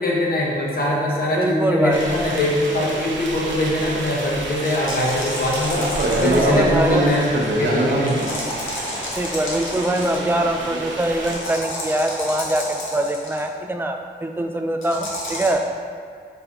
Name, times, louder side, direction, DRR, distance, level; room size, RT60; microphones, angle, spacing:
voice 1, 0.0-7.3 7.6-8.5, left 1 dB, 50° left, -3 dB, 0.9 m, -22 dB
voice 2, 1.4-2.0 6.0-7.0 9.2-15.7, right 1 dB, 10° right, 4 dB, 0.3 m, -23 dB
sound 1, 1.9-11.4, right 1 dB, 70° right, 0.7 m, -26 dB
sound 2, 4.6-6.8 8.1-10.3 11.2-13.4 14.8-15.5, left 1 dB, 85° left, 0.8 m, -31 dB
4.4 x 2.5 x 3.5 m, 2.1 s
cardioid pair, 55°, 20 cm